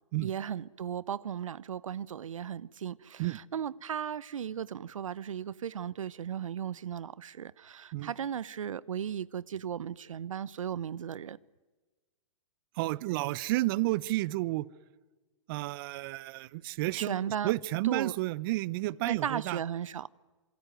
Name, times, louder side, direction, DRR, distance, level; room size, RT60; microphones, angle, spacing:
voice 1, 0.2-11.4 16.9-17.5 17.8-18.1 19.0-20.1, right 8 dB, 80° right, 0.8 m, -36 dB
voice 2, 12.8-14.7 15.5-19.6, right 18 dB, 45° right, 0.8 m, -31 dB
27.0 x 23.5 x 9.2 m
hypercardioid pair, 130°, 17 cm